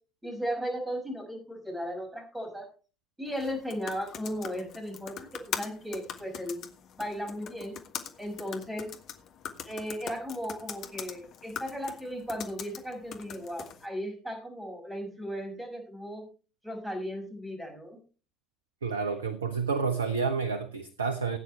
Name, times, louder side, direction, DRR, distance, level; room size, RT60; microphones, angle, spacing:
voice 1, 0.2-2.7 3.2-6.6 7.0-7.7 8.2-8.9 9.6-16.3 16.6-18.0, equal, 5° right, 3 dB, 6.0 m, -36 dB
sound 1, 3.3-13.9, left 8 dB, 50° left, 1.5 m, -42 dB
voice 2, 18.8-21.4, right 5 dB, 80° right, 12 dB, 0.8 m, -29 dB
18.0 x 9.2 x 3.3 m, 0.35 s
figure-of-eight pair, 60°, 0 cm